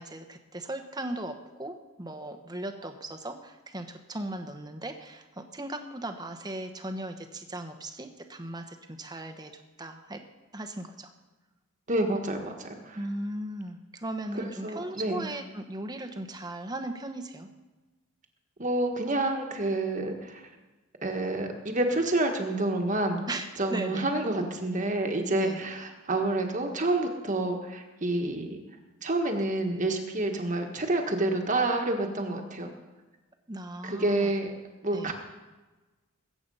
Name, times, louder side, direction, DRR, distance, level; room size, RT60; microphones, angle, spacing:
voice 1, 0.0-9.5 9.8-10.2 10.5-11.1 12.9-17.5 23.3-24.1 25.3-25.6 33.5-34.3 34.9-35.1, right 1 dB, 20° right, 6 dB, 1.0 m, -37 dB
voice 2, 11.9-13.0 14.3-15.2 18.6-20.4 21.0-23.3 23.6-28.6 29.0-32.7 33.8-34.5 34.8-35.1, right 2 dB, 35° right, 3 dB, 1.5 m, -28 dB
21.0 x 8.7 x 5.5 m, 1.2 s
head